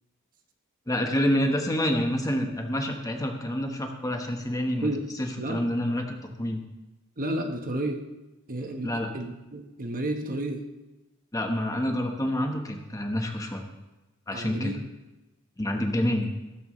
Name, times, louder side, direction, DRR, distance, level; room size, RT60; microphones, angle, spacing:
voice 1, 0.9-4.9 5.2-6.6 8.8-9.1 11.3-13.7 14.3-14.7 15.6-16.3, left 1 dB, 15° left, 3 dB, 1.2 m, -28 dB
voice 2, 7.2-8.0 8.5-10.6 14.3-14.9, right 1 dB, 40° right, 4 dB, 1.2 m, -31 dB
15.0 x 13.0 x 3.2 m, 1.0 s
head